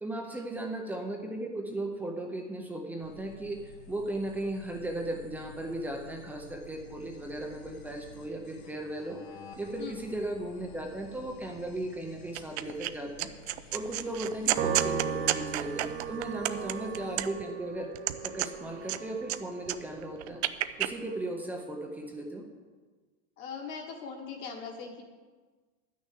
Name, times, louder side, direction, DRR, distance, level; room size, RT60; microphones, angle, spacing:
voice 1, 0.0-9.2 9.6-13.3 13.7-17.9 18.2-20.4 20.8-22.5, right 1 dB, 5° right, 2 dB, 0.6 m, -36 dB
sound 1, 3.0-17.3, left 4 dB, 70° left, 1.5 m, -52 dB
sound 2, 12.3-12.9 13.2-17.5 17.9-19.4 19.6-20.9, right 15 dB, 70° right, 0.6 m, -31 dB
Piano, 14.6-21.1, right 7 dB, 25° right, 0.9 m, -37 dB
voice 2, 23.4-25.0, left 5 dB, 35° left, 2 dB, 1.4 m, -41 dB
11.0 x 6.5 x 8.3 m, 1.4 s
supercardioid pair, 170°, 33 cm